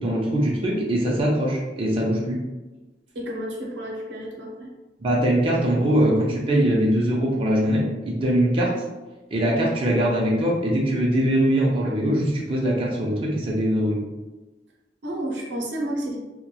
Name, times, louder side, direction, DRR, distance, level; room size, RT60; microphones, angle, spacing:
voice 1, 0.0-2.4 5.0-8.7 9.3-14.0, right 1 dB, 30° right, -3 dB, 0.4 m, -22 dB
voice 2, 3.1-4.7 15.0-16.2, right 1 dB, 85° right, -1 dB, 0.6 m, -31 dB
2.8 x 2.1 x 2.2 m, 1.1 s
head